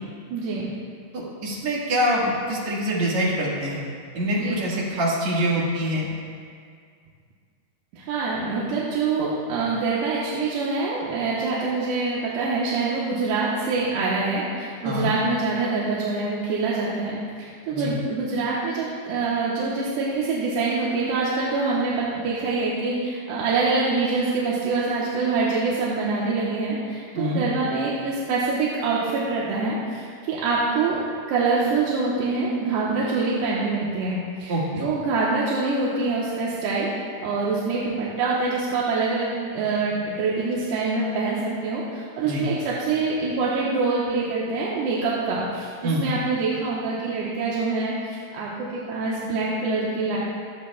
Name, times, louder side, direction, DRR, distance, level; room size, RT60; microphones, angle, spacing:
voice 1, 0.3-0.7 4.4-4.6 7.9-31.0 31.3-36.9 37.2-50.2, right 3 dB, 80° right, -6 dB, 3.2 m, -25 dB
voice 2, 1.1-3.8 4.1-6.1 14.8-15.1 17.7-17.9 27.1-27.4 34.5-34.9 42.2-42.4 45.8-46.1, equal, 50° right, -5 dB, 2.5 m, -25 dB
23.0 x 8.1 x 2.3 m, 2.1 s
omnidirectional pair, 4.9 m